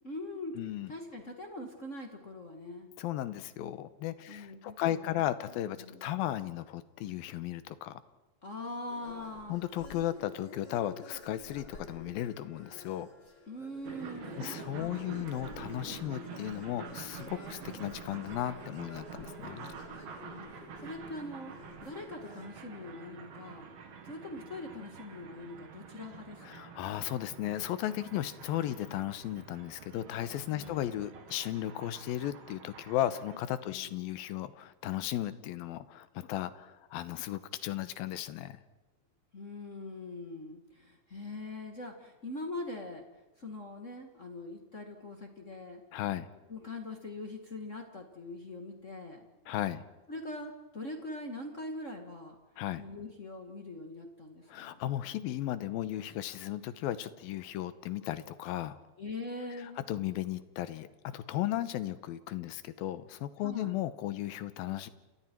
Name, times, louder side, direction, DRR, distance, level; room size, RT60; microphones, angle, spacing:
voice 1, 0.0-0.5 0.9-2.9 4.3-5.2 5.8-6.1 8.4-9.6 13.5-15.2 20.2-20.5 20.8-21.5 21.8-23.7 24.0-26.7 30.5-30.8 33.6-33.9 39.3-43.0 43.4-45.8 46.5-49.3 50.1-52.4 52.8-54.8 59.0-59.8 63.4-63.7, left 2 dB, 55° left, 3 dB, 0.8 m, -42 dB
voice 2, 0.6-0.9 3.0-8.0 9.5-13.1 14.4-19.7 26.4-38.6 45.9-46.3 49.5-49.8 52.6-52.8 54.5-58.8 59.6-64.9, left 13 dB, 75° left, 13 dB, 2.7 m, -35 dB
sound 1, 8.9-22.5, left 3 dB, 30° left, 3.5 m, -51 dB
sound 2, 13.8-33.4, right 6 dB, 80° right, 4.2 m, -48 dB
29.0 x 29.0 x 4.6 m, 1.1 s
omnidirectional pair, 4.4 m